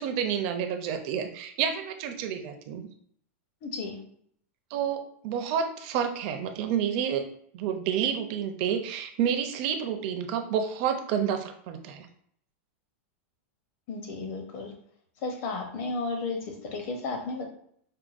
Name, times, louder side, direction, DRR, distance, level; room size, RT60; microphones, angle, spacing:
voice 1, 0.0-2.9 4.7-7.3 7.5-12.1, right 8 dB, 40° right, 6 dB, 0.4 m, -29 dB
voice 2, 3.6-4.0 13.9-14.7 15.2-17.4, left 3 dB, 35° left, 2 dB, 0.7 m, -33 dB
4.6 x 2.1 x 2.4 m, 0.64 s
supercardioid pair, 170°, 7 cm